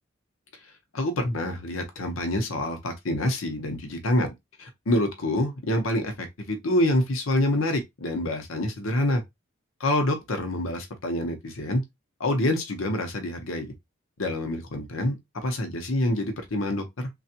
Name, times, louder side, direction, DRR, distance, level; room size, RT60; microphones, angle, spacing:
voice 1, 0.9-4.3 4.6-9.2 9.8-11.8 12.2-13.7 14.2-17.1, left 1 dB, 75° left, 0.8 m, -27 dB
3.4 x 2.4 x 2.7 m
head